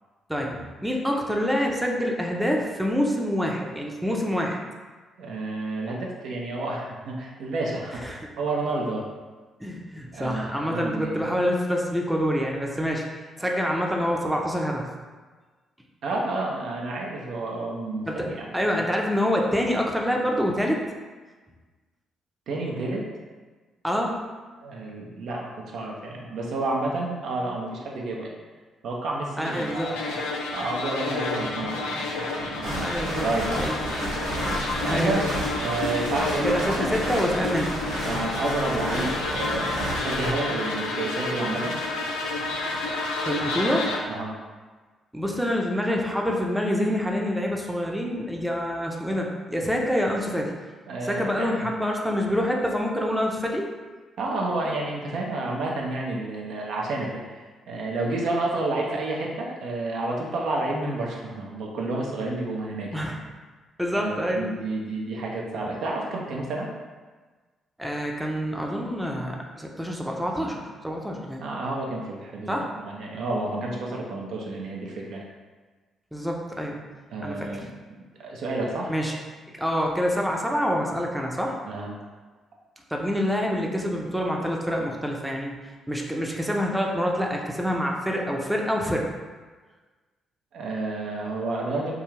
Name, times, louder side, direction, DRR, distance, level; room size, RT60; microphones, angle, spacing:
voice 1, 0.3-4.6 8.0-8.2 9.6-13.0 13.4-14.9 18.1-18.3 18.5-20.8 23.8-24.2 29.4-29.9 32.8-33.3 33.6-34.0 34.9-35.2 36.4-37.8 43.3-43.9 45.1-50.5 51.0-53.7 62.9-63.2 63.8-64.4 67.8-71.4 72.5-72.7 76.1-76.8 77.2-77.5 78.9-79.1 79.6-81.5 82.9-85.6 85.9-89.1, equal, 5° right, -1 dB, 0.5 m, -26 dB
voice 2, 5.2-8.1 8.4-9.1 10.1-11.3 13.4-13.6 16.0-18.5 22.5-23.0 24.6-28.3 28.8-30.2 30.5-34.2 34.8-35.3 35.6-36.9 38.0-41.7 44.1-44.3 50.9-51.7 54.2-62.9 64.0-66.7 71.4-75.3 77.1-78.9 81.7-81.9 90.5-91.9, right 2 dB, 65° right, -2 dB, 0.4 m, -30 dB
sound 1, 29.4-44.0, left 3 dB, 80° left, 0.3 m, -30 dB
sound 2, 32.6-40.3, right 1 dB, 85° right, 0.8 m, -31 dB
2.4 x 2.3 x 3.1 m, 1.4 s
hypercardioid pair, 45°, 0 cm